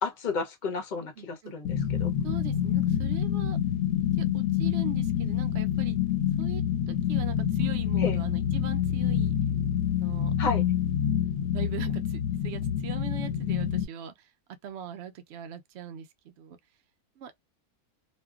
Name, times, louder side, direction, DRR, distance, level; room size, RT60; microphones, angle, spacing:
voice 1, 0.0-2.1 8.0-8.2 10.4-10.6, left 4 dB, 50° left, 0.6 m, -32 dB
voice 2, 1.2-1.6 2.2-3.6 4.2-6.0 6.4-9.3 9.9-10.3 11.2-14.3 14.6-16.6 17.2-17.3, right 9 dB, 65° right, 0.7 m, -42 dB
sound 1, 1.6-13.8, left 10 dB, 70° left, 0.9 m, -27 dB
2.5 x 2.2 x 2.3 m
omnidirectional pair, 1.6 m